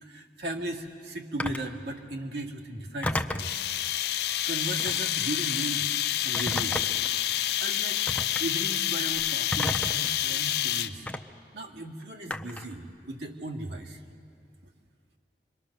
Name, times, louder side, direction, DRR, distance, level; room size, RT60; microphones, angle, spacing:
voice 1, 0.0-3.6 4.5-6.8 7.6-11.1 11.5-14.0, right 1 dB, 80° right, 0 dB, 2.1 m, -37 dB
Telephone, 1.4-1.7 3.0-3.5 4.8-5.2 6.3-7.1 8.1-8.4 9.5-10.1 11.1-11.2 12.3-12.7, left 1 dB, 10° left, 0.6 m, -32 dB
sound 1, 3.4-11.1, left 12 dB, 65° left, 0.7 m, -28 dB
27.0 x 23.0 x 6.6 m, 2.4 s
head